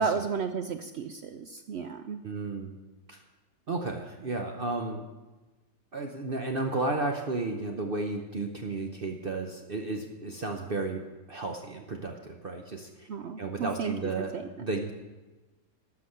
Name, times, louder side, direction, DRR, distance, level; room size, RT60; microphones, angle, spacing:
voice 1, 0.0-2.2 13.1-14.4, right 5 dB, 65° right, 8 dB, 0.7 m, -33 dB
voice 2, 2.2-2.8 3.1-3.2 3.7-5.1 5.9-11.0 11.3-13.1 13.4-14.3 14.6-14.9, right 3 dB, 45° right, 3 dB, 0.9 m, -33 dB
12.0 x 5.9 x 7.7 m, 1.2 s
omnidirectional pair, 1.6 m